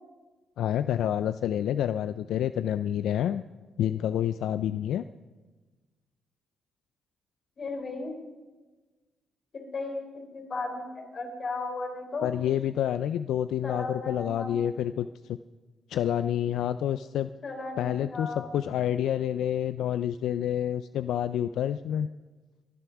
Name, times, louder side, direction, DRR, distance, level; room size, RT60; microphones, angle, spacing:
voice 1, 0.6-3.4 3.8-5.0 12.2-15.4 15.9-17.3 17.8-22.1, left 10 dB, 80° left, 12 dB, 0.4 m, -28 dB
voice 2, 7.6-8.1 9.5-12.3 13.6-14.6 17.4-18.5, left 3 dB, 45° left, 3 dB, 3.9 m, -35 dB
22.5 x 7.8 x 5.9 m, 1.2 s
cardioid pair, 90°, 0 cm